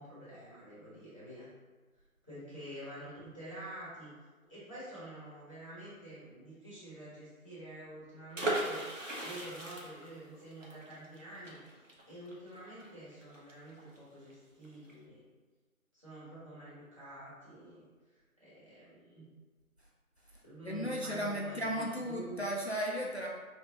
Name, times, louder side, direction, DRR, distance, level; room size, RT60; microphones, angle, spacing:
voice 1, 0.0-1.5 2.2-4.1 4.5-8.9 9.2-15.2 15.9-19.3 20.4-22.4, right 1 dB, 20° right, -11 dB, 1.3 m, -48 dB
sound 1, 8.3-14.0 14.3-14.4 14.6-14.9, right 1 dB, 60° right, 1.0 m, -38 dB
voice 2, 20.6-23.3, equal, 50° left, -2 dB, 0.5 m, -35 dB
5.0 x 3.1 x 2.8 m, 1.3 s
figure-of-eight pair, 170°, 44 cm